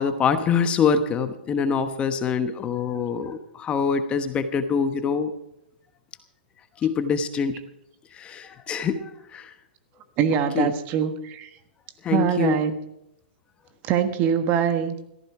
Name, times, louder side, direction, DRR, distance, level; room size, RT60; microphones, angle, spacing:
voice 1, 0.0-5.3 6.8-7.6 8.1-9.5 10.3-10.7 12.0-12.6, left 6 dB, 20° left, 9 dB, 1.1 m, -25 dB
voice 2, 10.2-11.5 12.1-12.7 13.8-14.9, right 8 dB, 35° right, 9 dB, 1.4 m, -23 dB
16.5 x 14.5 x 4.8 m, 0.80 s
hypercardioid pair, 140°, 5 cm